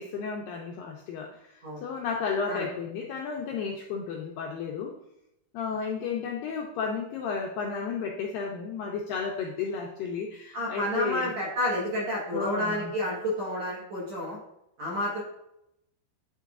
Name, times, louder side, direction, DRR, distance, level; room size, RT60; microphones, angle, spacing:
voice 1, 0.0-4.9 5.5-11.3 12.3-12.9, left 5 dB, 80° left, 0 dB, 2.0 m, -33 dB
voice 2, 10.5-14.4 14.8-15.2, left 1 dB, 60° right, -5 dB, 1.9 m, -30 dB
9.1 x 4.6 x 2.4 m, 0.81 s
omnidirectional pair, 4.7 m